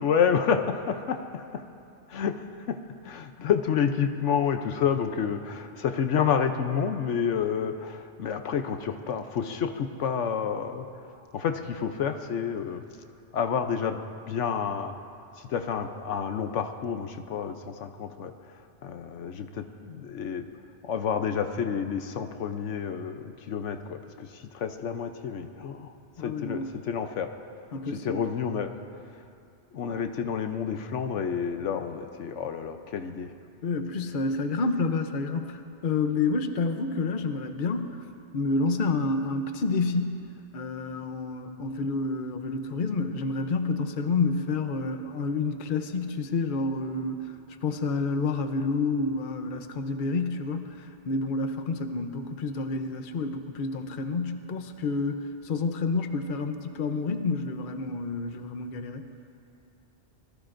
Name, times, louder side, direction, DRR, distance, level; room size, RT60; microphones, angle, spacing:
voice 1, 0.0-1.6 2.1-2.8 3.0-10.9 11.3-12.8 13.3-14.0 14.3-14.9 15.4-18.3 18.8-20.4 20.8-25.9 26.2-27.3 27.9-28.7 29.7-33.3, left 7 dB, 80° left, 7 dB, 1.1 m, -29 dB
voice 2, 26.2-26.7 27.7-28.2 33.6-38.0 38.3-40.2 40.5-47.3 47.6-59.0, left 3 dB, 50° left, 7 dB, 0.9 m, -29 dB
25.5 x 20.0 x 2.6 m, 2.6 s
omnidirectional pair, 1.2 m